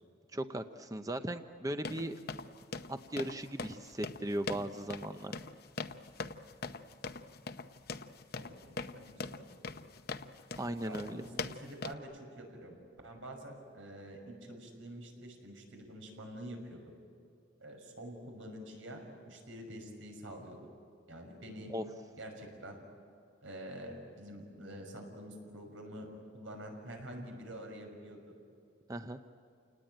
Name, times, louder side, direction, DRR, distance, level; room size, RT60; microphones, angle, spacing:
voice 1, 0.3-2.2 2.9-5.3 10.6-11.2 21.7-21.8 28.9-29.2, right 1 dB, 20° right, 8 dB, 0.7 m, -37 dB
sound 1, 1.8-12.0, left 4 dB, 50° left, 0.8 m, -42 dB
voice 2, 8.4-9.8 10.8-12.7 13.0-16.9 17.6-20.6 21.1-21.7 22.2-22.8 23.4-28.3, right 1 dB, 90° right, 3 dB, 6.0 m, -47 dB
29.0 x 19.0 x 9.1 m, 2.4 s
head